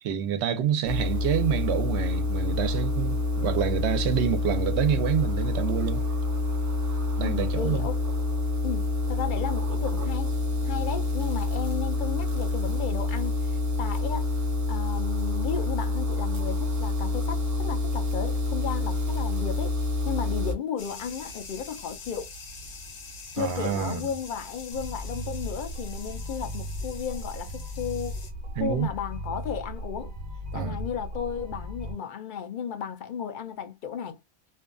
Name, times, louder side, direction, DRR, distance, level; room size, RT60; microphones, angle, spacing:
voice 1, 0.0-6.0 7.2-7.9 23.4-24.0 28.6-28.9 30.5-30.8, right 8 dB, 85° right, 0.9 m, -27 dB
sound 1, 0.8-20.5, left 2 dB, 30° right, 0.3 m, -27 dB
voice 2, 7.2-8.0 8.6-10.3 10.6-14.3 14.7-22.3 23.3-28.2 28.6-30.1 30.5-34.2, left 7 dB, 60° left, 0.6 m, -34 dB
sound 2, 20.8-28.3, left 3 dB, 85° left, 1.1 m, -43 dB
sound 3, 24.7-31.9, equal, 55° right, 0.9 m, -37 dB
2.6 x 2.2 x 2.3 m
omnidirectional pair, 1.1 m